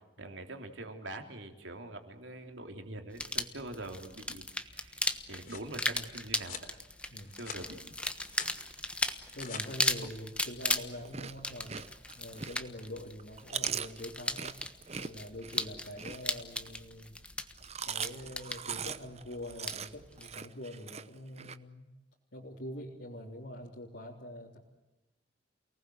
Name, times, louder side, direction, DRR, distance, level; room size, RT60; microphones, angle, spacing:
voice 1, 0.2-5.0 5.3-6.8 7.0-8.0, right 1 dB, 80° right, 5 dB, 3.5 m, -44 dB
sound 1, 3.1-20.3, left 2 dB, 5° left, 1.3 m, -37 dB
sound 2, 5.0-5.7 6.4-6.7 7.2-7.6 8.0-8.6 9.1-9.6, left 6 dB, 45° left, 3.8 m, -46 dB
voice 2, 9.4-11.9 12.1-14.6 15.0-17.1 17.9-21.9 22.3-24.6, left 1 dB, 70° left, -4 dB, 3.6 m, -44 dB
Chewing mastication, 10.9-12.8 13.2-16.7 17.4-21.6, right 7 dB, 35° right, 0.9 m, -40 dB
29.0 x 19.5 x 7.9 m, 1.0 s
head